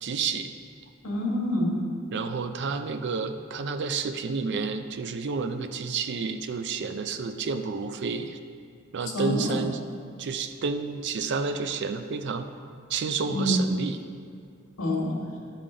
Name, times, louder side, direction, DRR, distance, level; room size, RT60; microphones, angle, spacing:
voice 1, 0.0-0.5 2.1-8.4 8.9-9.8 10.2-12.5 12.9-14.0, right 5 dB, 55° right, 8 dB, 0.4 m, -30 dB
voice 2, 1.0-1.7 9.1-9.6 13.3-13.5 14.8-15.4, left 1 dB, 85° left, -2 dB, 1.6 m, -27 dB
11.5 x 3.8 x 4.9 m, 2.2 s
head